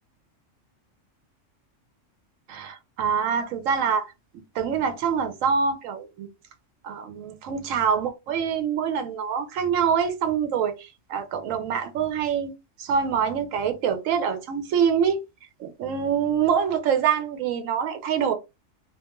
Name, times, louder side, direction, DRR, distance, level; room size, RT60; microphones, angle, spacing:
voice 1, 2.5-4.1 4.5-6.3 6.8-12.5 12.8-15.2 15.6-18.3, right 7 dB, 85° right, 1.0 m, -25 dB
2.4 x 2.3 x 2.9 m
omnidirectional pair, 1.3 m